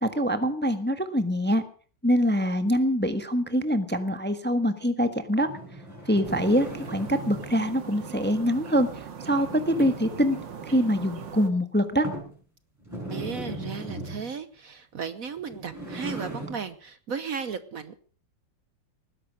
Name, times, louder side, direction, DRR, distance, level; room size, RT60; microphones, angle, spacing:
voice 1, 0.0-1.6 2.0-5.5 6.1-8.9 9.2-10.4 10.7-12.1, equal, 5° left, 9 dB, 1.1 m, -24 dB
sound 1, 5.4-7.5 9.3-10.2 10.8-10.9 11.4-11.5 12.0-12.4 12.8-14.3 15.4-16.6, right 1 dB, 10° right, 6.6 m, -37 dB
sound 2, 6.2-11.5, right 6 dB, 85° right, 2.3 m, -40 dB
voice 2, 13.1-18.0, right 6 dB, 55° right, 12 dB, 1.2 m, -35 dB
19.5 x 11.0 x 6.3 m, 0.44 s
omnidirectional pair, 2.0 m